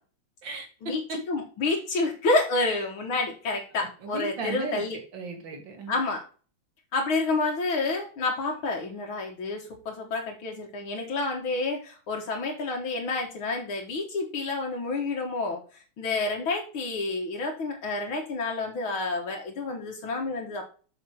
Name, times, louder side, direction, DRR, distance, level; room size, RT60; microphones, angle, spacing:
voice 1, 0.4-1.2 2.6-2.8 3.8-4.8 5.1-6.0, right 2 dB, 65° right, 4 dB, 2.6 m, -36 dB
voice 2, 1.3-5.0 5.9-6.3 6.9-15.6 16.0-20.6, left 3 dB, 80° left, 1 dB, 2.3 m, -29 dB
6.5 x 4.4 x 6.3 m, 0.37 s
omnidirectional pair, 2.2 m